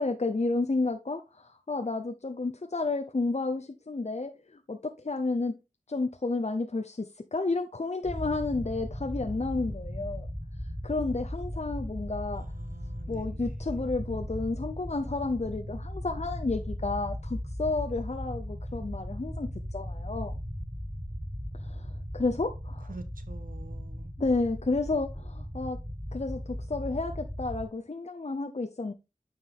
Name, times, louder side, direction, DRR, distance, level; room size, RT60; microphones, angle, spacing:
voice 1, 0.0-5.5 5.9-10.3 10.8-12.4 13.1-20.3 21.6-21.9 22.1-22.9 24.2-25.8 26.1-28.9, left 3 dB, 55° left, 0.7 m, -31 dB
sound 1, 8.0-27.7, equal, 10° right, 2.7 m, -37 dB
voice 2, 12.3-13.6 22.9-24.2, right 3 dB, 85° right, 0.7 m, -48 dB
8.9 x 4.7 x 3.7 m
wide cardioid pair, 45°, 14 cm